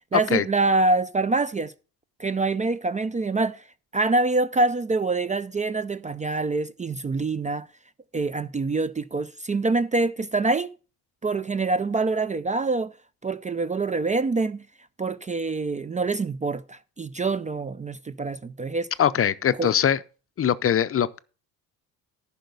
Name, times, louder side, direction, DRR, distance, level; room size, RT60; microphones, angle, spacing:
voice 1, 0.1-1.7 2.2-3.6 3.9-7.7 8.1-10.7 11.2-12.9 13.2-14.6 15.0-18.9 19.6-19.7, right 3 dB, 20° right, 0.4 m, -25 dB
voice 2, 19.0-20.0 20.4-21.2, left 9 dB, 35° left, 0.6 m, -22 dB
10.0 x 5.7 x 6.6 m
cardioid pair, 90°, 38 cm